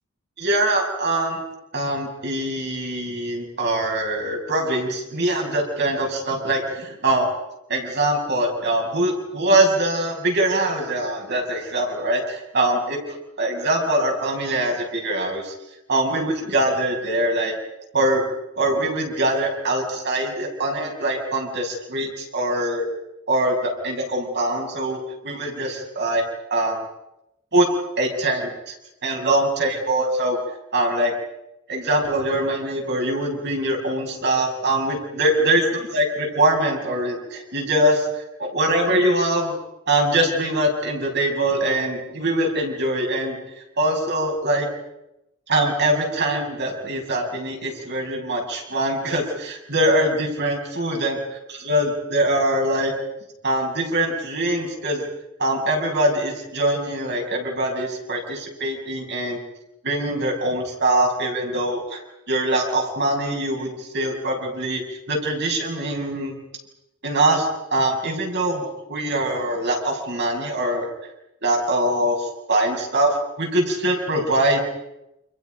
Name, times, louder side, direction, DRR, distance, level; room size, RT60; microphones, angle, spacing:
voice 1, 0.4-1.4 1.7-7.3 7.7-15.5 15.9-17.5 17.9-18.2 18.6-22.8 23.3-26.2 26.5-26.8 27.5-27.7 28.0-28.7 29.0-30.4 30.7-31.1 31.7-38.0 38.4-39.5 39.9-43.4 43.8-44.7 45.5-51.2 51.5-52.9 53.4-55.0 55.4-59.4 59.8-62.0 62.3-64.8 65.1-66.3 67.0-70.9 71.4-73.1 73.4-74.6, right 1 dB, 50° right, 0 dB, 6.6 m, -23 dB
29.5 x 28.0 x 5.3 m, 0.88 s
head